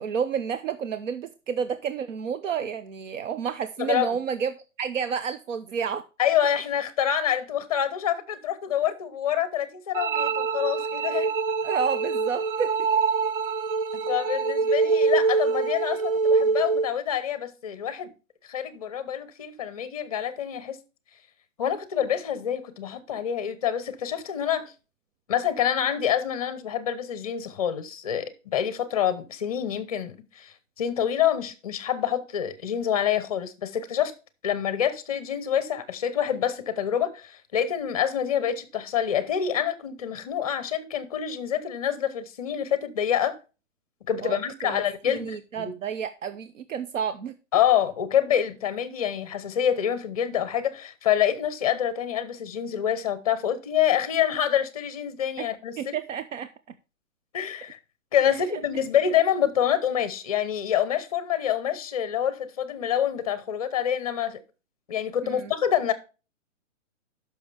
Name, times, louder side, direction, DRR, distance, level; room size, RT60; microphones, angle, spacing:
voice 1, 0.0-4.5 4.8-6.0 11.1-11.3 11.6-12.9 44.2-47.3 55.4-55.5 55.8-56.5 58.5-58.6 65.2-65.5, right 7 dB, 70° right, 0.9 m, -30 dB
voice 2, 3.8-4.1 6.2-11.3 14.1-18.1 18.4-20.8 21.6-24.7 25.3-34.1 34.4-43.4 44.1-45.7 47.5-56.0 57.3-57.8 58.1-64.4 64.9-65.9, left 9 dB, 30° left, 0.8 m, -26 dB
sound 1, 9.9-16.9, right 4 dB, 45° right, 0.6 m, -25 dB
12.5 x 6.1 x 3.4 m
hypercardioid pair, 180°, 39 cm